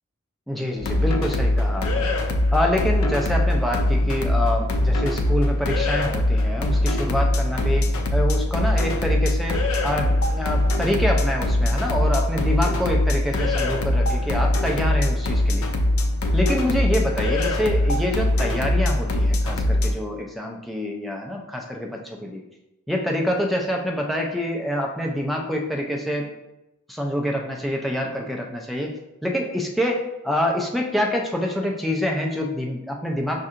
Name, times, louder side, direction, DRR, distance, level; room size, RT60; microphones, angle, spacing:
voice 1, 0.5-2.1 2.5-15.7 16.3-22.4 22.9-26.3 26.9-29.0 29.2-33.4, left 1 dB, ahead, -1 dB, 0.3 m, -26 dB
sound 1, 0.8-19.9, left 1 dB, 75° left, 0.4 m, -22 dB
5.2 x 2.7 x 2.4 m, 0.93 s
head